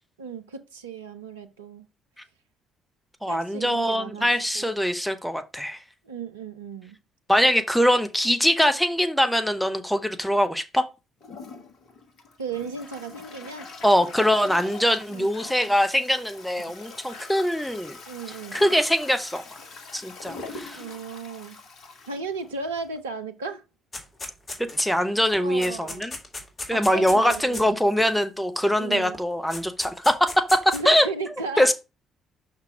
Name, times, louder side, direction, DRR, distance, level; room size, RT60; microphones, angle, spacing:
voice 1, 0.2-1.9 3.3-4.3 4.5-4.7 6.0-7.0 12.4-13.7 15.1-15.3 18.1-18.6 20.7-21.6 22.1-23.6 25.4-26.1 26.7-27.8 28.8-29.2 30.7-31.7, right 4 dB, 80° right, 0.5 m, -35 dB
voice 2, 3.2-5.8 7.3-10.8 13.8-18.0 18.5-19.4 19.9-20.8 24.8-26.1 26.7-31.1 31.6-31.7, equal, 5° left, 1.2 m, -22 dB
Toilet flush, 11.2-23.0, left 3 dB, 55° left, 1.3 m, -43 dB
sound 1, 23.9-25.0 25.3-28.1 29.1-29.2 29.5-30.8, left 2 dB, 30° left, 2.1 m, -36 dB
5.7 x 4.5 x 4.9 m
figure-of-eight pair, 45°, 0 cm